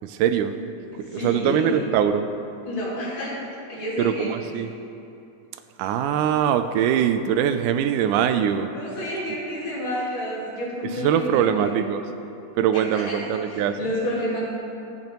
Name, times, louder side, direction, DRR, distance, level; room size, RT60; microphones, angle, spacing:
voice 1, 0.0-2.3 4.0-4.7 5.8-8.7 11.0-12.0 12.6-13.8, right 9 dB, 85° right, 9 dB, 2.1 m, -22 dB
voice 2, 0.9-1.8 2.6-3.4 3.7-4.6 8.7-11.8 12.7-14.4, equal, 85° left, -10 dB, 4.5 m, -30 dB
16.5 x 8.5 x 3.0 m, 2.8 s
omnidirectional pair, 3.6 m